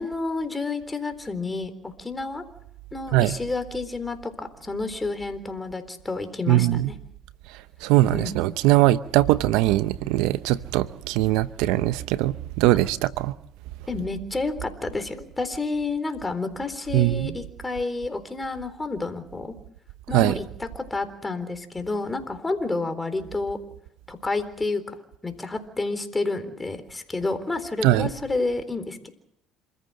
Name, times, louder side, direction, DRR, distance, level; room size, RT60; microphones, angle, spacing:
voice 1, 0.0-2.4 2.9-7.0 8.1-8.3 13.9-19.5 20.1-23.6 24.1-25.0 25.2-29.1, left 3 dB, 15° left, 3.9 m, -30 dB
voice 2, 6.5-6.9 7.8-13.3 16.9-17.3 20.1-20.4 27.8-28.1, right 16 dB, 80° right, 0.8 m, -21 dB
27.5 x 14.5 x 7.8 m
supercardioid pair, 80°, 0 cm